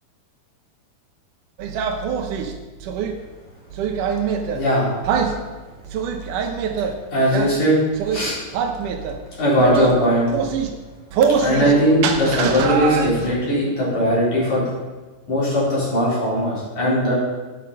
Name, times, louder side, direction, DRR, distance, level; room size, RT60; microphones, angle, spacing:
sound 1, 1.6-3.1 3.7-4.6 5.0-5.4 5.8-6.9 7.3-7.5 7.9-8.2 8.5-9.2 9.6-9.9 10.3-10.7 11.1-11.7 12.0-13.3, right 6 dB, 70° right, 2.3 m, -23 dB
voice 1, 4.5-4.9 6.9-7.8 8.1-8.4 9.4-10.3 11.4-14.6 15.3-17.2, equal, 50° left, -8 dB, 5.2 m, -19 dB
11.0 x 9.7 x 5.5 m, 1.3 s
omnidirectional pair, 4.3 m